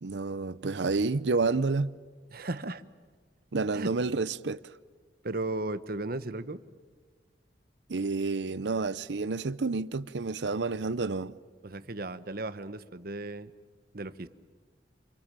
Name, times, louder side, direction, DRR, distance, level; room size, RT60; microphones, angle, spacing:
voice 1, 0.0-1.9 3.5-4.6 7.9-11.3, right 3 dB, 75° right, 0.7 m, -29 dB
voice 2, 2.3-2.8 3.7-3.9 5.2-6.6 11.6-13.5 13.9-14.3, right 2 dB, 55° right, 1.1 m, -35 dB
28.0 x 23.5 x 7.5 m
head